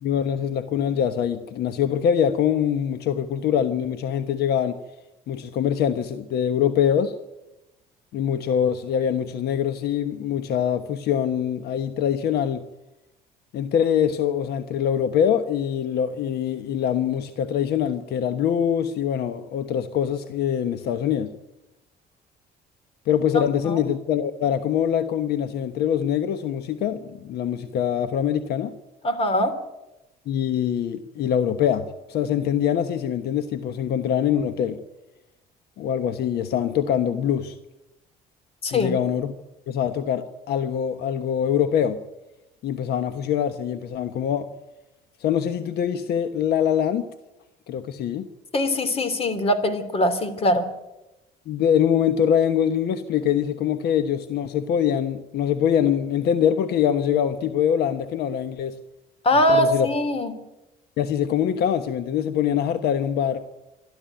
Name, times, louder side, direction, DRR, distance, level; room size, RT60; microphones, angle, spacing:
voice 1, 0.0-4.8 5.3-7.1 8.1-12.6 13.5-21.3 23.1-28.7 30.3-34.8 35.8-37.5 38.7-39.3 39.7-42.0 42.6-44.5 45.2-47.1 47.7-48.3 51.5-58.8 59.5-59.9 61.0-63.4, left 9 dB, 75° left, 10 dB, 1.2 m, -24 dB
voice 2, 29.0-29.5 38.6-38.9 48.5-50.7 59.2-60.3, left 1 dB, 35° left, 12 dB, 3.0 m, -22 dB
25.5 x 12.5 x 9.2 m, 0.99 s
cardioid pair, 110°, 17 cm